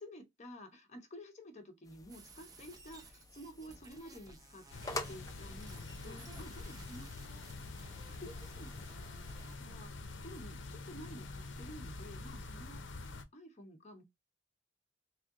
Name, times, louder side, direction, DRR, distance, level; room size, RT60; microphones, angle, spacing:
voice 1, 0.0-4.7 5.1-7.5 8.2-8.7 9.6-14.0, equal, 35° left, 1.0 m, -52 dB
sound 1, 1.8-9.1, left 2 dB, 20° left, 0.5 m, -49 dB
sound 2, 2.1-9.6, right 3 dB, 20° right, 0.7 m, -57 dB
sound 3, 4.7-13.2, left 3 dB, 75° left, 0.6 m, -46 dB
3.2 x 2.6 x 3.6 m
head